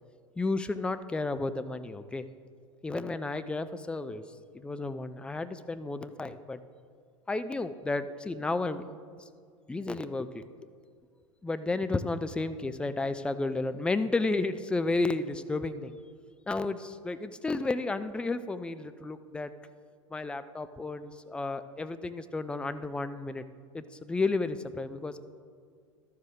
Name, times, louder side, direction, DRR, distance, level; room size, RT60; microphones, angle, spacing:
voice 1, 0.4-2.3 2.8-4.2 4.5-6.6 7.3-8.8 9.7-10.5 11.4-15.9 16.5-19.5 20.1-23.4 23.7-25.2, left 3 dB, 5° left, 11 dB, 0.3 m, -32 dB
12.5 x 6.9 x 3.8 m, 2.1 s
figure-of-eight pair, 80°, 16 cm